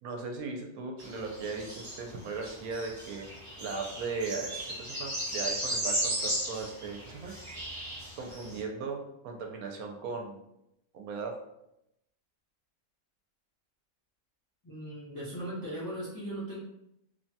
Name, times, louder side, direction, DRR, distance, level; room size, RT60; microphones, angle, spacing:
voice 1, 0.0-3.3 3.6-4.5 4.8-7.3 8.2-10.4 10.9-11.4, right 4 dB, 85° right, 1 dB, 1.0 m, -37 dB
sound 1, 1.0-8.6, right 1 dB, 35° right, 0.5 m, -36 dB
voice 2, 14.6-16.6, right 1 dB, 25° left, -7 dB, 0.4 m, -38 dB
3.0 x 2.2 x 2.7 m, 0.83 s
omnidirectional pair, 1.5 m